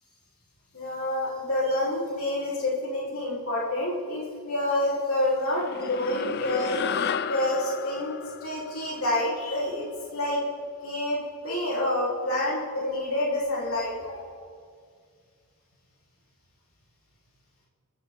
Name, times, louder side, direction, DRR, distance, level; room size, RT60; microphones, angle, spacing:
voice 1, 0.7-6.8 7.3-8.1 8.4-9.8 10.1-10.4 10.8-11.2 11.4-14.3, left 1 dB, 75° left, -6 dB, 4.1 m, -28 dB
sound 1, 5.5-10.2, left 6 dB, 50° left, 0.4 m, -33 dB
25.0 x 13.0 x 3.8 m, 2.1 s
head